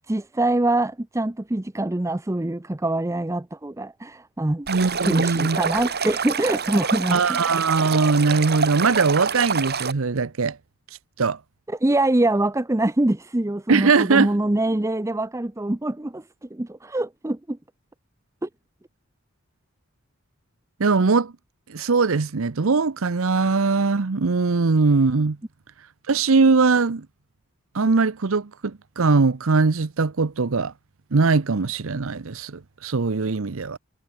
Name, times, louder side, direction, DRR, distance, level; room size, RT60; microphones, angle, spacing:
voice 1, 0.0-7.4 11.8-16.2 16.5-17.6 18.4-18.5, right 1 dB, 15° right, 0.6 m, -24 dB
Stream, 4.7-9.9, right 5 dB, 50° right, 4.8 m, -27 dB
voice 2, 4.7-5.6 7.1-10.6 11.2-11.4 13.7-14.4 20.8-21.3 21.7-25.4 26.1-27.1 27.7-30.7 31.1-33.8, right 4 dB, 70° right, 0.7 m, -21 dB
head